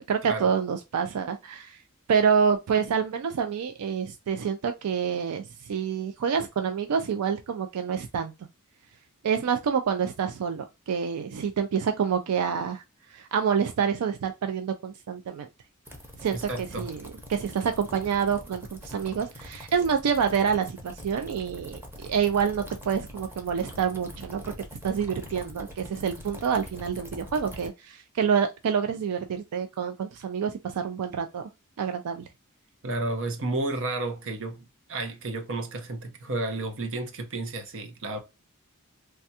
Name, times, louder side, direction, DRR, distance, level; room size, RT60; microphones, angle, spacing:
voice 1, 0.1-1.8 2.1-8.3 9.2-12.8 13.1-15.5 16.2-24.4 24.8-31.4 31.8-32.3, right 7 dB, 90° right, 0.4 m, -27 dB
sound 1, 15.9-27.7, equal, 10° right, 0.8 m, -43 dB
voice 2, 16.3-16.9 32.8-38.2, right 2 dB, 60° right, 0.8 m, -32 dB
3.3 x 2.3 x 2.7 m
head